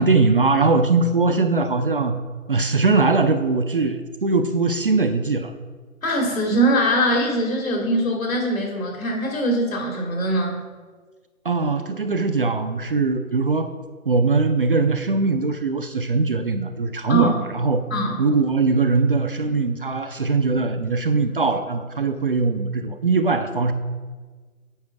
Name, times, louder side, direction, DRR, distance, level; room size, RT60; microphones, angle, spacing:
voice 1, 0.0-2.2 2.5-5.5 11.4-13.7 14.1-17.8 18.2-23.7, right 3 dB, 40° right, 8 dB, 0.4 m, -21 dB
voice 2, 6.0-10.6 17.1-17.3 17.9-18.2, right 1 dB, 70° left, 0 dB, 2.4 m, -22 dB
8.7 x 4.9 x 4.6 m, 1.4 s
figure-of-eight pair, 135°, 43 cm